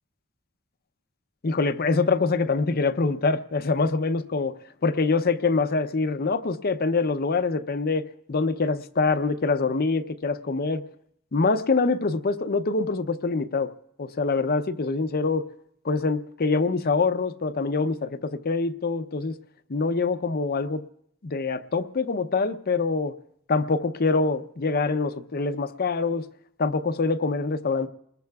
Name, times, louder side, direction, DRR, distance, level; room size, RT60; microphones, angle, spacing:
voice 1, 1.4-10.8 11.3-13.7 14.0-15.4 15.8-19.4 19.7-20.8 21.2-23.1 23.5-26.3 26.6-27.9, left 4 dB, 45° left, 10 dB, 0.6 m, -25 dB
30.0 x 20.5 x 2.3 m, 0.72 s
head